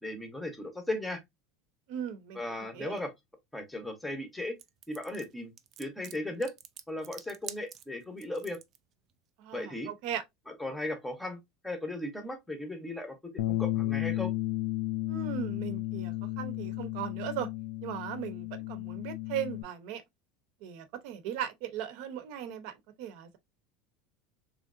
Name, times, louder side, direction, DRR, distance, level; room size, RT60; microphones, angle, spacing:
voice 1, 0.0-1.2 2.3-3.1 3.5-4.5 4.9-5.5 5.8-6.5 6.9-8.6 9.5-9.9 10.5-14.3, left 1 dB, 5° left, 0.8 m, -36 dB
voice 2, 1.9-2.9 9.4-10.2 15.1-17.5 17.8-20.0 20.6-23.4, right 10 dB, 60° right, 0.8 m, -38 dB
sound 1, 4.6-8.8, right 10 dB, 30° right, 0.4 m, -47 dB
Bass guitar, 13.4-19.6, left 16 dB, 75° left, 0.3 m, -33 dB
3.8 x 3.1 x 2.4 m
cardioid pair, 165°, 0 cm